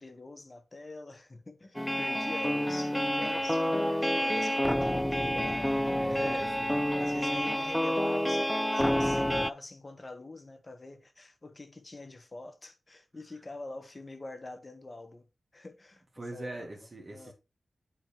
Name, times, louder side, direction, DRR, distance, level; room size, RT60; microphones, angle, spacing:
voice 1, 0.0-6.4 7.0-15.3 15.5-16.0 16.3-17.3, left 2 dB, 35° left, 1.4 m, -45 dB
sound 1, 1.7-9.5, equal, 5° left, 0.4 m, -28 dB
voice 2, 6.0-6.8 16.2-17.3, right 2 dB, 40° right, 2.1 m, -42 dB
9.5 x 3.5 x 4.4 m
wide cardioid pair, 75°, 0 cm